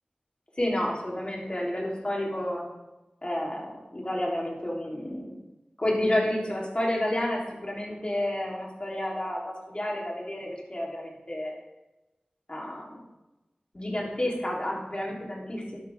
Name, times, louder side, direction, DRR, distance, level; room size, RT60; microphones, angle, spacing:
voice 1, 0.6-2.6 3.2-5.4 5.8-11.5 12.5-13.0 13.7-15.8, left 1 dB, 35° left, -3 dB, 3.7 m, -30 dB
12.5 x 11.5 x 3.7 m, 1.0 s
wide cardioid pair, 45°, 3 cm